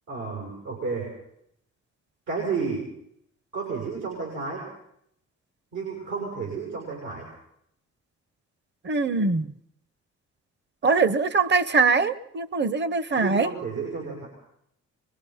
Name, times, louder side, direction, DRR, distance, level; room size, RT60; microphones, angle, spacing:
voice 1, 0.1-1.1 2.3-2.9 3.5-4.7 5.7-7.3 13.2-14.3, right 5 dB, 80° right, 6.9 m, -31 dB
voice 2, 8.8-9.5 10.8-13.5, right 4 dB, 35° right, 1.1 m, -22 dB
24.5 x 22.0 x 5.8 m
cardioid pair, 90°, 30 cm